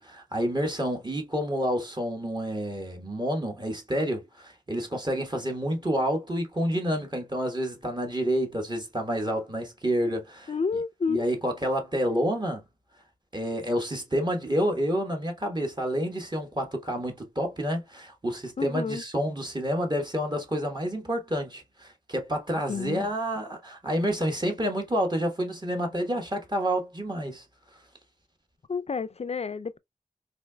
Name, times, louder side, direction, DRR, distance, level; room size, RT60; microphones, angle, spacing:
voice 1, 0.0-10.5 11.1-12.6 13.3-27.4, equal, 30° right, 1.2 m, -29 dB
voice 2, 10.5-11.3 18.6-19.0 22.7-23.1 28.7-29.8, left 5 dB, 50° left, 0.4 m, -30 dB
4.1 x 2.8 x 2.2 m
wide cardioid pair, 45°, 14 cm